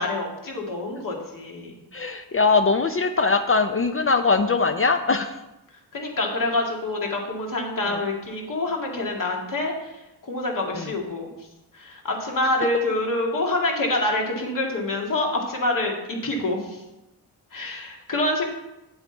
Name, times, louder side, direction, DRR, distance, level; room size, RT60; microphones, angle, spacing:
voice 1, 0.0-1.8 5.9-11.3 11.7-16.8 17.5-18.4, left 2 dB, 50° left, 0 dB, 2.2 m, -26 dB
voice 2, 1.9-5.4 7.9-8.0 10.7-10.9, left 4 dB, 35° left, 8 dB, 0.5 m, -21 dB
8.5 x 7.9 x 4.0 m, 0.95 s
wide cardioid pair, 105°, 41 cm